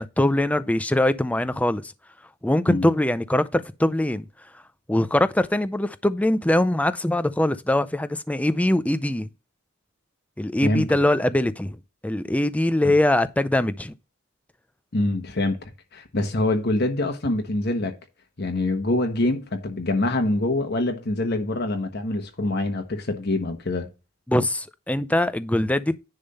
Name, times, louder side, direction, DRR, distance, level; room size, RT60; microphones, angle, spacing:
voice 1, 0.0-1.9 2.4-4.2 4.9-9.3 10.4-11.8 12.0-13.9 24.3-26.0, left 1 dB, 5° left, 0.4 m, -22 dB
voice 2, 14.9-15.6 15.9-17.9 18.4-23.9, left 2 dB, 50° left, 1.1 m, -25 dB
10.5 x 3.5 x 5.4 m
head